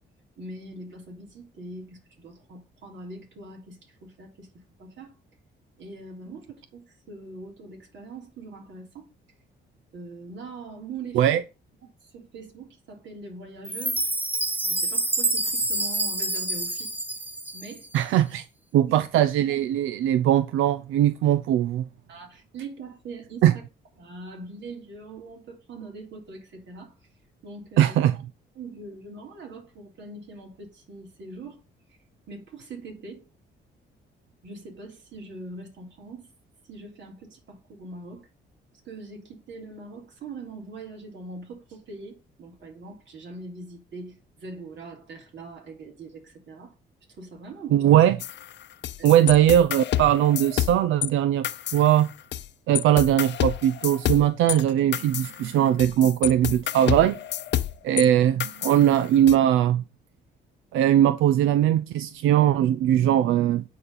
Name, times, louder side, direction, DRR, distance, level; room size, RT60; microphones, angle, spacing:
voice 1, 0.4-4.5 4.8-5.1 5.8-9.1 9.9-11.3 12.0-14.1 14.6-16.9 17.5-17.9 18.7-18.9 22.1-23.4 24.0-26.9 27.4-28.0 28.5-31.6 32.3-33.3 34.4-36.3 36.7-38.3 38.8-46.7 47.2-47.9 49.0-49.2, right 3 dB, 65° right, 3.4 m, -42 dB
Chime, 13.6-17.9, right 2 dB, 10° right, 0.8 m, -27 dB
voice 2, 17.9-18.4 18.7-21.8 23.4-23.5 27.8-28.2 47.7-48.2 49.0-52.1 52.7-57.2 57.8-59.8 60.7-63.6, right 11 dB, 85° right, 0.5 m, -20 dB
sound 1, 48.2-51.1 51.4-52.5 52.7-58.0 58.4-59.3, left 12 dB, 65° left, 0.7 m, -29 dB
9.4 x 4.2 x 5.5 m
cardioid pair, 90°, 20 cm